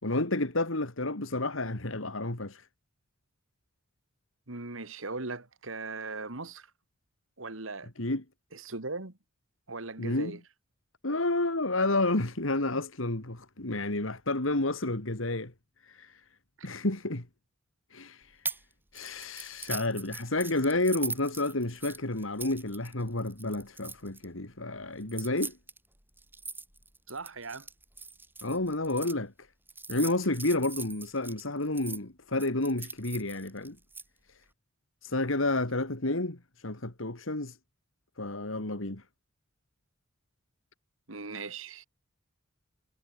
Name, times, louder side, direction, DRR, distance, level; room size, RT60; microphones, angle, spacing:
voice 1, 0.0-2.6 8.0-8.2 10.0-10.4 11.0-15.5 15.9-16.2 16.6-17.2 17.9-18.4 18.9-25.5 28.4-29.3 29.9-33.8 35.0-37.6 38.2-39.0, left 2 dB, 70° left, 2.7 m, -30 dB
voice 2, 4.5-6.7 7.4-7.9 8.5-9.2 9.7-10.4 16.6-16.7 27.1-27.7 41.1-41.9, right 3 dB, 70° right, 2.4 m, -39 dB
sound 1, 18.4-18.6 18.9-24.2 25.0-29.1 29.7-32.0 32.4-34.0, right 3 dB, 10° right, 7.8 m, -40 dB
head